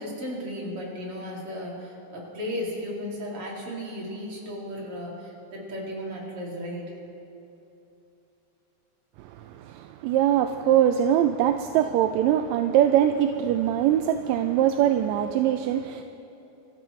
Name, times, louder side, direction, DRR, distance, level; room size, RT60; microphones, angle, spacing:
voice 1, 0.0-6.9, equal, 50° right, -3 dB, 3.4 m, -35 dB
voice 2, 9.2-16.0, right 10 dB, 80° right, 8 dB, 1.7 m, -22 dB
25.5 x 14.0 x 3.2 m, 2.9 s
omnidirectional pair, 3.4 m